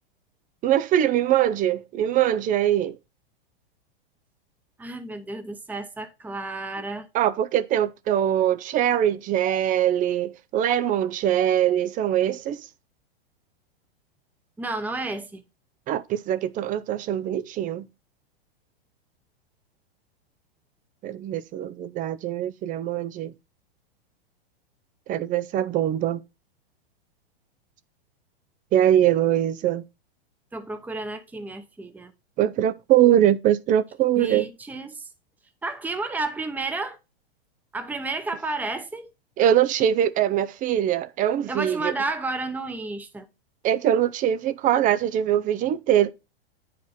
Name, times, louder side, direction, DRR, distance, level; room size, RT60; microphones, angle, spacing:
voice 1, 0.6-3.0 7.1-12.6 15.9-17.9 21.0-23.3 25.1-26.2 28.7-29.8 32.4-34.5 39.4-41.9 43.6-46.1, right 11 dB, 25° right, 0.5 m, -22 dB
voice 2, 4.8-7.1 14.6-15.4 30.5-32.1 34.2-35.1 35.6-37.0 37.7-39.1 41.5-43.3, right 3 dB, 5° right, 0.9 m, -31 dB
9.2 x 5.1 x 4.2 m
hypercardioid pair, 120°, 31 cm